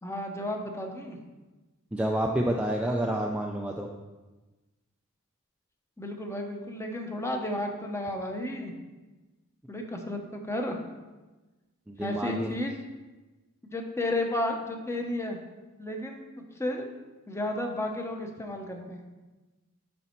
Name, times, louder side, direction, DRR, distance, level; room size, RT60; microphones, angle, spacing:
voice 1, 0.0-1.2 6.0-8.7 9.7-10.8 12.0-12.8 13.7-15.4 15.8-16.2 16.6-16.9 17.3-19.0, left 1 dB, 15° left, 3 dB, 0.9 m, -32 dB
voice 2, 1.9-3.9 11.9-12.5, right 1 dB, 5° right, 0 dB, 0.4 m, -29 dB
9.8 x 4.2 x 4.5 m, 1.2 s
head